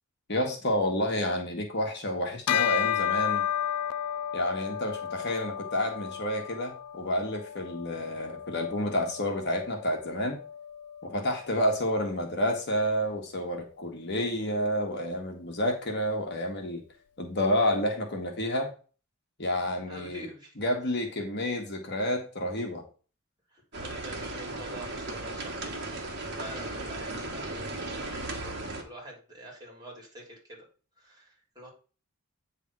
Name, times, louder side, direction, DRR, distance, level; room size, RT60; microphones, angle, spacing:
voice 1, 0.3-3.5 4.3-10.4 11.0-16.8 17.2-18.7 19.4-20.3 20.6-22.8, left 1 dB, 50° left, 2 dB, 1.5 m, -29 dB
Bell, 2.5-12.2, left 10 dB, 90° left, 0.3 m, -33 dB
voice 2, 19.9-20.5 23.5-25.7 26.3-30.6 31.0-31.7, equal, 20° right, -1 dB, 3.3 m, -46 dB
sound 1, 23.7-28.8, right 2 dB, 50° right, 1.6 m, -36 dB
9.0 x 3.5 x 6.1 m, 0.37 s
head